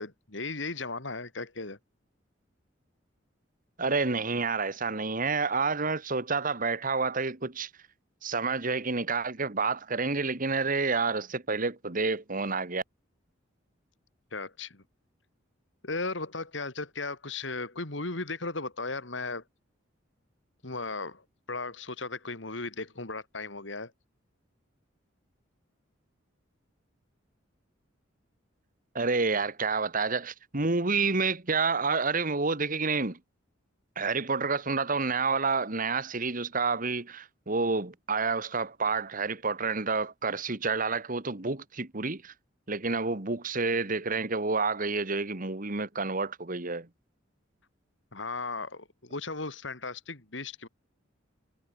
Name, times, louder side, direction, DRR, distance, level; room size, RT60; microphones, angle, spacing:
voice 1, 0.0-1.8 14.3-14.8 15.8-19.4 20.6-21.2 21.5-23.9 48.1-50.7, left 3 dB, 70° left, 3.1 m, -36 dB
voice 2, 3.8-7.7 8.2-12.8 28.9-33.2 34.0-42.3 42.7-46.9, right 4 dB, 45° right, 1.9 m, -29 dB
head